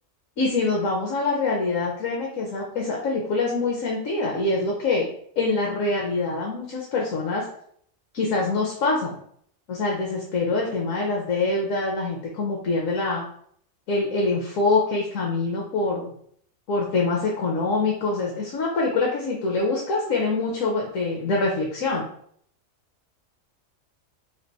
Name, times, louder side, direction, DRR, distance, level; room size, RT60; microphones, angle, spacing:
voice 1, 0.4-5.1 5.4-7.5 8.1-9.2 9.7-13.2 13.9-16.1 16.7-22.1, left 3 dB, 75° left, -1 dB, 1.1 m, -25 dB
3.3 x 2.9 x 3.9 m, 0.64 s
omnidirectional pair, 1.4 m